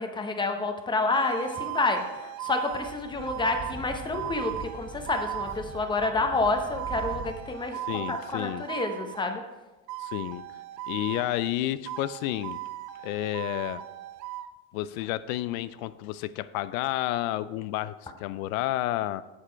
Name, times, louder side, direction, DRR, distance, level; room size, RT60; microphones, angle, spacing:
voice 1, 0.0-7.8 8.1-9.4, left 3 dB, 10° left, 5 dB, 0.8 m, -29 dB
Sirène police, 1.1-9.4 9.9-11.6 11.9-14.5, right 14 dB, 45° right, 0.4 m, -38 dB
Speech / Wind, 2.7-7.6, right 3 dB, 15° right, 1.9 m, -42 dB
voice 2, 7.9-8.6 10.0-10.5 10.9-12.6 13.0-13.8 14.7-19.2, left 14 dB, 85° left, 16 dB, 0.5 m, -30 dB
7.4 x 6.6 x 4.5 m, 1.1 s
supercardioid pair, 130°, 41 cm